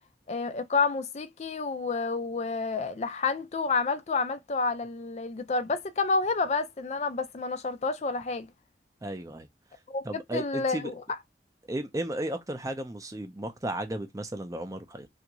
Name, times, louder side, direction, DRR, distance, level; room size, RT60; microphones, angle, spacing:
voice 1, 0.3-8.5 9.9-10.9, left 4 dB, 35° left, 0.4 m, -29 dB
voice 2, 9.0-9.5 10.0-10.9 11.7-15.1, right 1 dB, 20° right, 0.5 m, -34 dB
3.4 x 2.5 x 2.9 m
head